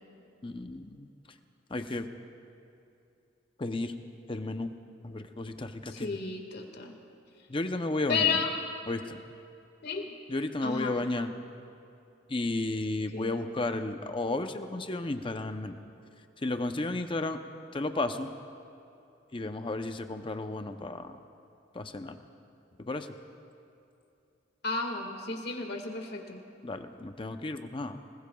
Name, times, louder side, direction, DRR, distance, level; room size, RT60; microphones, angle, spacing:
voice 1, 0.4-1.1 1.7-2.1 3.6-3.9 4.3-4.7 5.0-6.2 7.5-8.4 8.9-9.2 10.3-11.3 12.3-15.8 16.4-17.4 17.7-18.3 19.3-21.2 21.7-22.2 22.8-23.1 26.6-28.0, left 2 dB, 25° left, 7 dB, 0.6 m, -33 dB
voice 2, 5.9-6.9 8.1-8.5 9.8-10.1 10.6-11.0 13.1-13.4 24.6-26.4, left 5 dB, 55° left, 3 dB, 1.8 m, -32 dB
25.5 x 20.0 x 2.3 m, 2.7 s
head